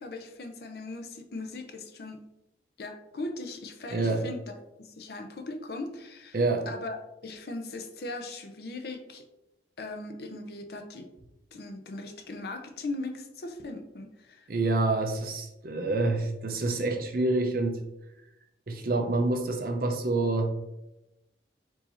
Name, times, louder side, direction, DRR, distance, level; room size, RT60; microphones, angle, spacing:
voice 1, 0.0-2.2 2.8-4.4 4.8-6.4 6.7-7.0 7.2-9.3 9.8-11.1 11.5-14.5, left 2 dB, 55° left, 6 dB, 0.5 m, -39 dB
voice 2, 3.9-4.2 6.3-6.7 14.5-17.8 18.7-20.5, right 2 dB, 50° right, 4 dB, 0.7 m, -27 dB
4.6 x 2.7 x 4.3 m, 0.92 s
head